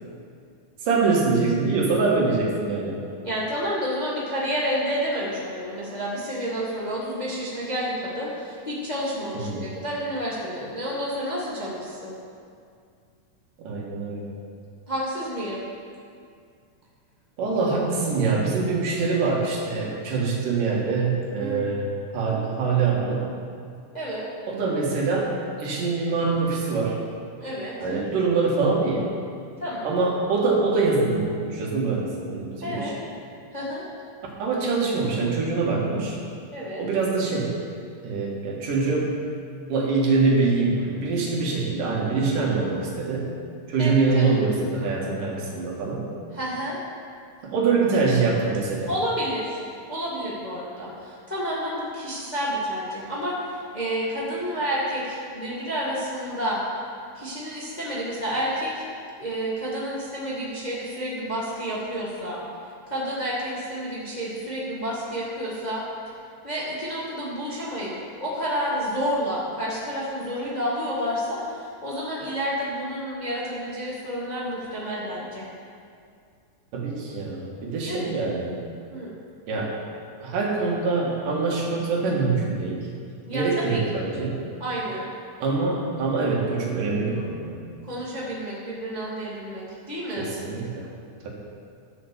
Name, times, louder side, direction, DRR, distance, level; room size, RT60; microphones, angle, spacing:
voice 1, 0.8-3.0 9.4-9.6 13.6-14.3 17.4-21.9 22.1-23.3 24.5-25.3 25.6-27.0 27.8-29.1 29.8-32.9 34.4-36.2 36.8-37.6 38.0-39.2 39.7-43.3 43.7-46.1 47.4-48.9 76.7-78.5 79.5-79.7 80.2-82.9 83.3-84.4 85.4-87.6 90.2-90.9, right 4 dB, 85° right, -3 dB, 3.6 m, -24 dB
voice 2, 3.2-12.2 14.9-15.6 21.4-21.6 23.9-24.3 27.4-27.7 29.6-29.9 32.6-32.9 33.5-33.8 36.5-36.8 43.8-44.3 46.3-46.8 48.9-49.6 49.9-56.6 57.1-58.8 59.2-62.4 62.9-65.8 66.4-67.9 68.2-75.5 77.9-78.1 78.9-79.1 83.2-83.8 84.6-85.1 87.9-90.3, equal, 20° left, -6 dB, 1.3 m, -30 dB
12.5 x 6.9 x 7.2 m, 2.3 s
omnidirectional pair, 3.7 m